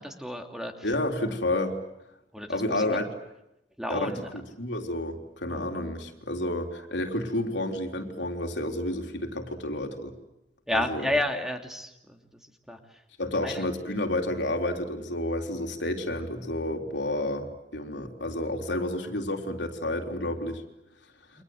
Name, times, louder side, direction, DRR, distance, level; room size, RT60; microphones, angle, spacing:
voice 1, 0.0-0.7 2.3-2.8 3.8-4.2 5.5-5.6 10.7-12.2 12.7-12.8 13.4-13.6, left 1 dB, 5° right, 4 dB, 2.7 m, -31 dB
voice 2, 0.8-1.8 2.5-3.1 3.9-10.1 10.7-11.1 13.2-20.6, left 1 dB, 80° left, 3 dB, 3.8 m, -30 dB
29.5 x 25.0 x 7.9 m, 0.89 s
head